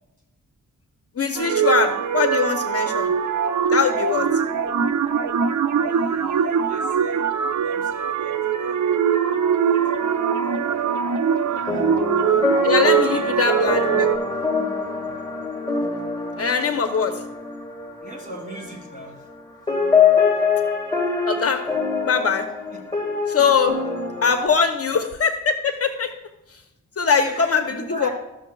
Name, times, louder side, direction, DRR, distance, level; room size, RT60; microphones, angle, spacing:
voice 1, 1.2-3.1 3.7-4.3 12.6-14.1 16.4-17.2 21.3-21.6 22.0-22.5 23.3-23.8 24.2-26.1 27.0-28.1, left 6 dB, 50° left, 6 dB, 0.8 m, -21 dB
sound 1, 1.4-14.2, right 7 dB, 65° right, 0.6 m, -22 dB
voice 2, 4.4-4.7 5.8-7.2 7.6-9.8 11.5-11.9 12.9-13.3 18.0-19.3 22.7-22.9 27.2-28.1, equal, 25° right, -1 dB, 2.7 m, -40 dB
sound 2, 10.0-19.4 19.7-24.3, left 5 dB, 15° left, 1.8 m, -25 dB
14.0 x 6.4 x 2.3 m, 0.95 s
cardioid pair, 80°, 31 cm